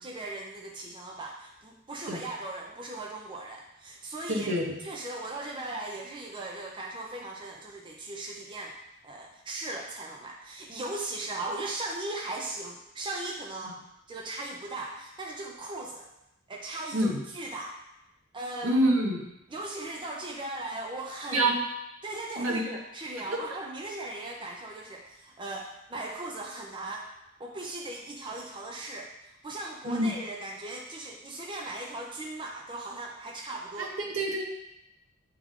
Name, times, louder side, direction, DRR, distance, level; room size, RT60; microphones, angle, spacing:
voice 1, 0.0-4.5 4.8-8.7 9.0-13.7 14.1-16.1 16.5-17.7 18.3-18.7 19.5-21.5 22.0-27.1 27.4-33.9, right 2 dB, 25° right, -1 dB, 0.5 m, -38 dB
voice 2, 4.3-4.8 13.6-13.7 16.9-17.2 18.6-19.2 21.3-21.6 22.4-22.8 23.3-23.4 29.8-30.2 33.8-34.4, right 1 dB, 70° right, 0 dB, 1.2 m, -27 dB
8.6 x 3.6 x 3.6 m, 0.87 s
head